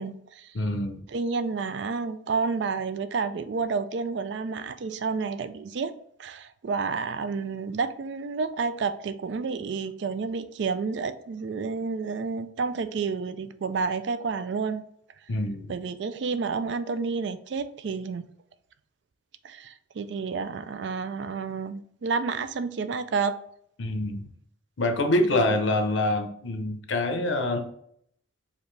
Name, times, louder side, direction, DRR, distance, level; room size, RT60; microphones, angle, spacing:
voice 1, 0.0-0.5 1.1-5.9 6.2-14.8 15.7-18.3 19.4-23.4 25.3-25.6, right 4 dB, 65° right, 12 dB, 0.3 m, -30 dB
voice 2, 0.5-1.1 15.3-15.7 23.8-24.3 24.8-27.7, left 1 dB, 75° left, 6 dB, 0.6 m, -26 dB
5.0 x 2.6 x 3.2 m, 0.69 s
head